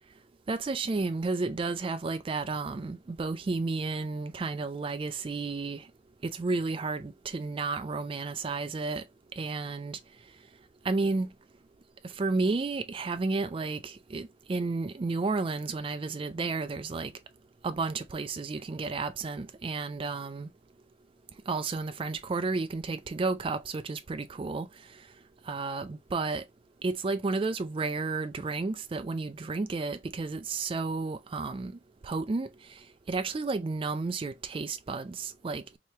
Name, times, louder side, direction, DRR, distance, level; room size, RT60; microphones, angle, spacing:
voice 1, 0.5-5.9 6.2-9.0 9.3-10.0 10.8-11.3 12.0-17.1 17.6-20.5 21.5-25.1 25.4-26.4 26.8-35.8, right 3 dB, 25° right, 0.3 m, -32 dB
3.1 x 2.9 x 3.2 m
head